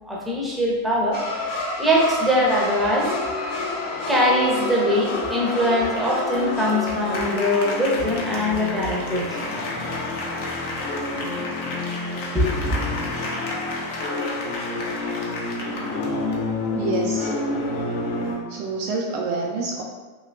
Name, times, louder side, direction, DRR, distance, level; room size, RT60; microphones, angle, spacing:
voice 1, 0.0-1.2 1.8-3.1 4.1-9.4 12.3-12.9, equal, 5° right, -4 dB, 0.7 m, -22 dB
sound 1, 1.1-18.4, left 2 dB, 50° left, 0.6 m, -28 dB
voice 2, 16.7-17.3 18.5-19.8, right 3 dB, 50° right, -2 dB, 0.4 m, -27 dB
3.0 x 2.7 x 2.5 m, 1.4 s
figure-of-eight pair, 90°, 0 cm